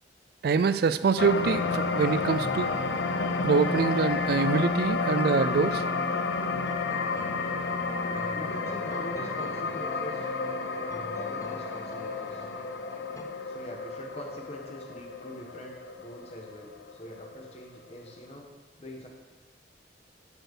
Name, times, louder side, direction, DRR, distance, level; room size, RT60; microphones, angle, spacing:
voice 1, 0.4-2.7 3.4-5.8, right 5 dB, 55° right, 13 dB, 0.3 m, -25 dB
sound 1, 1.2-17.6 18.1-18.2, left 3 dB, 75° left, 0.6 m, -31 dB
sound 2, 5.4-13.2, left 1 dB, 15° left, 0.6 m, -44 dB
voice 2, 8.0-10.3 11.1-12.5 13.4-18.5 18.8-19.1, left 1 dB, 35° left, 1 dB, 1.4 m, -44 dB
10.5 x 4.4 x 6.6 m, 1.2 s
head